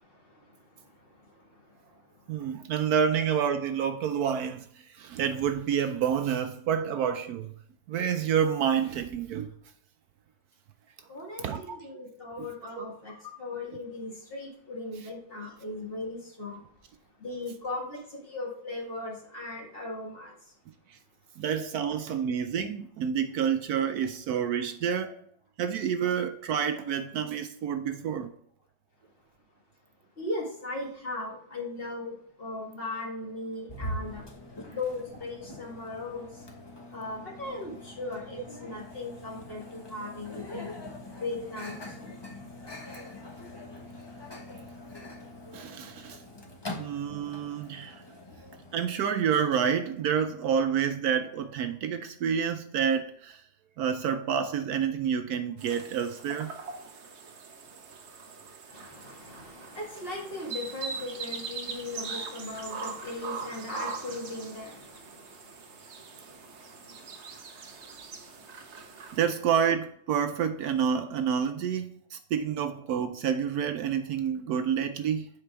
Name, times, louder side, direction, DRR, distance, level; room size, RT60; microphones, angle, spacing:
voice 1, 0.0-2.3 11.1-16.7 17.2-20.6 30.1-34.3 34.7-36.5 36.9-40.8 41.2-42.2 42.6-43.2 43.5-43.6 44.1-44.2 45.2-45.6 46.0-46.1 58.7-69.2, left 2 dB, 35° left, 1.9 m, -39 dB
voice 2, 2.3-7.5 7.9-9.5 11.4-11.8 12.4-12.5 12.8-12.9 20.9-21.0 21.4-25.2 25.6-28.3 45.5-46.2 46.8-48.0 48.7-53.4 53.8-56.6 69.1-75.3, right 8 dB, 70° right, 1.0 m, -28 dB
Microwave oven, 33.7-48.8, left 1 dB, 15° left, 1.1 m, -43 dB
sound 1, 55.6-69.3, right 5 dB, 50° right, 1.0 m, -42 dB
8.5 x 4.9 x 3.4 m
omnidirectional pair, 1.8 m